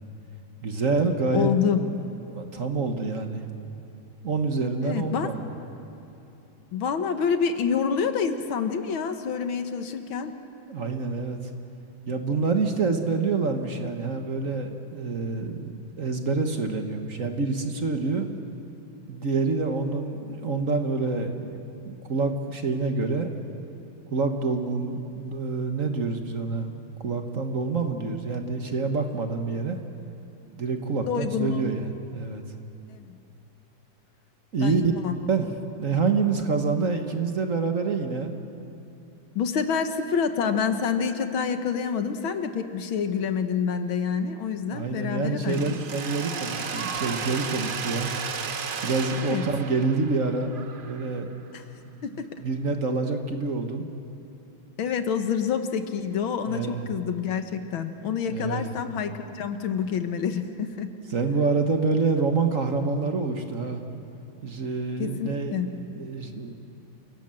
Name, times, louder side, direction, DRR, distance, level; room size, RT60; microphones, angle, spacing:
voice 1, 0.6-1.5 1.8-1.9 2.3-3.4 4.2-5.4 10.7-11.4 12.1-18.3 19.1-23.3 24.1-26.7 27.0-29.8 30.6-32.4 34.5-34.8 35.3-35.5 35.8-38.3 44.7-48.1 48.8-50.5 50.8-51.3 51.9-52.0 52.4-53.9 56.5-56.9 58.3-58.7 61.1-63.8 64.4-66.5, right 4 dB, 45° right, 5 dB, 1.5 m, -27 dB
voice 2, 1.3-1.8 4.8-5.3 6.7-10.3 31.1-31.7 32.9-33.2 34.6-34.7 35.0-35.2 39.4-45.8 49.2-49.4 51.5-51.6 52.0-52.3 54.8-60.9 65.0-65.7, left 6 dB, 80° left, 8 dB, 2.0 m, -27 dB
Mechanisms, 45.5-51.4, right 5 dB, 70° right, 0.4 m, -34 dB
28.0 x 17.5 x 7.7 m, 2.9 s
omnidirectional pair, 2.2 m